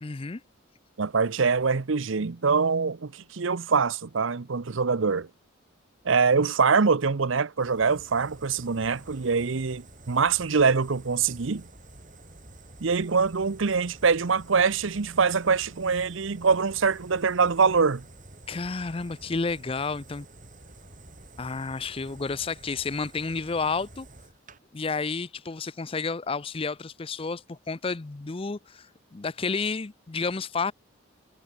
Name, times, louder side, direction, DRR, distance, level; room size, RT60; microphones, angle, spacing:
voice 1, 0.0-0.4 18.5-20.3 21.4-24.1 24.7-30.7, left 4 dB, 25° left, 0.5 m, -31 dB
voice 2, 1.0-5.3 6.0-11.7 12.8-18.0, right 5 dB, 70° right, 0.7 m, -24 dB
Fire, 7.6-24.6, right 2 dB, 40° right, 8.0 m, -49 dB
head